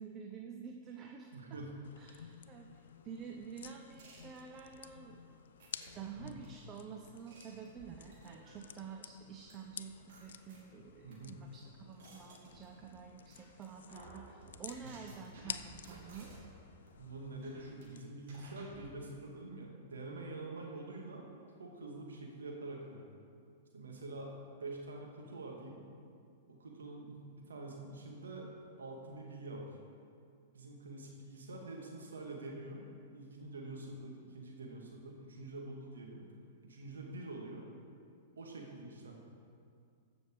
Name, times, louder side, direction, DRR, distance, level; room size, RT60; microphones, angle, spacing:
voice 1, 0.0-1.6 2.0-5.2 5.9-16.3, right 6 dB, 30° right, 3 dB, 0.7 m, -49 dB
voice 2, 1.3-1.7 6.1-6.4 11.0-11.4 14.8-15.0 17.0-21.3 21.6-23.2 23.7-24.3 24.6-25.8 26.5-28.5 28.8-29.7 30.5-32.8 33.1-36.2 36.6-37.7 38.4-39.1, right 2 dB, 85° right, 0 dB, 2.0 m, -46 dB
sound 1, 1.8-18.0, left 8 dB, 75° left, 0.4 m, -52 dB
sound 2, 4.0-4.8 5.6-6.5 7.0-8.8 9.5-9.6 10.1-11.1 11.6-13.0 13.3-13.6 13.9-16.6 16.9-17.0 17.4-17.8 18.3-18.9, right 3 dB, 60° right, 2.9 m, -56 dB
15.0 x 6.3 x 4.8 m, 2.3 s
hypercardioid pair, 110°, 0 cm